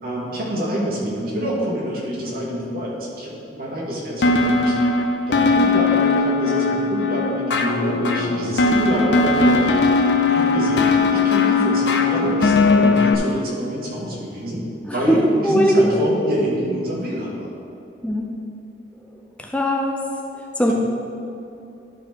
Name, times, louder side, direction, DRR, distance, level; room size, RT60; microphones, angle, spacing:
voice 1, 0.0-17.5, equal, 55° right, -5 dB, 2.1 m, -26 dB
sound 1, 4.2-13.1, left 3 dB, 75° left, 0.6 m, -18 dB
voice 2, 14.9-15.9 18.0-18.3 19.4-20.0 20.6-20.7, equal, 5° left, 0 dB, 0.5 m, -19 dB
12.0 x 4.6 x 4.6 m, 2.7 s
head